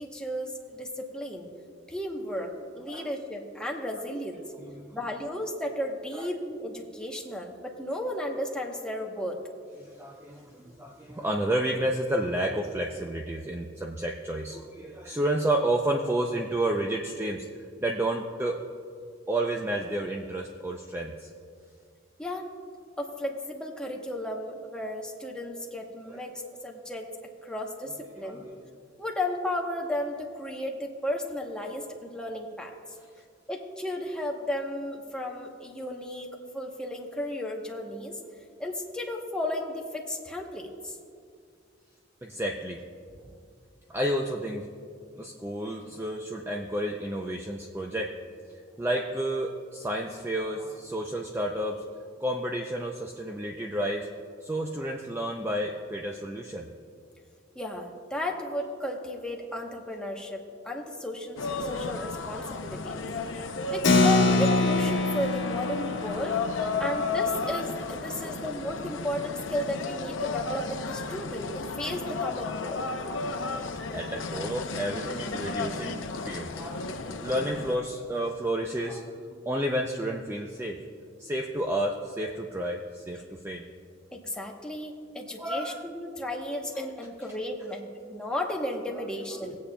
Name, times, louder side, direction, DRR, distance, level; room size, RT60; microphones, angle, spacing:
voice 1, 0.0-1.5 1.9-4.4 4.9-9.4 22.2-22.5 23.0-27.1 27.4-28.4 29.0-32.7 33.5-38.2 38.6-41.0 57.5-63.1 63.6-66.4 66.8-72.8 84.1-89.6, left 1 dB, 5° left, 0 dB, 0.9 m, -34 dB
voice 2, 4.6-5.0 6.2-6.3 9.8-17.5 17.8-18.6 19.3-21.3 26.1-26.2 28.2-28.5 42.2-42.8 43.2-43.3 43.9-44.7 45.2-48.1 48.8-51.8 52.2-54.1 54.4-56.7 68.2-68.4 72.9-73.5 73.9-80.8 81.2-83.6 85.4-85.8, right 1 dB, 10° right, 1 dB, 0.4 m, -31 dB
sound 1, 61.4-77.8, left 3 dB, 85° left, 0.6 m, -33 dB
Keyboard (musical), 63.8-69.9, left 3 dB, 65° left, 1.1 m, -27 dB
20.0 x 8.3 x 2.2 m, 2.2 s
head